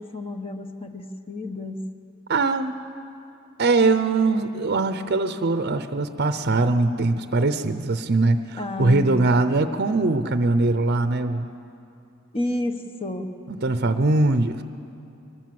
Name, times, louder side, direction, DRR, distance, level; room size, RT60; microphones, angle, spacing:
voice 1, 0.0-1.9 8.6-9.3 12.3-13.3, left 2 dB, 30° left, 6 dB, 1.0 m, -30 dB
voice 2, 2.3-2.8 3.6-11.5 13.5-14.6, right 3 dB, 50° right, 10 dB, 0.7 m, -21 dB
23.5 x 19.5 x 7.7 m, 2.6 s
head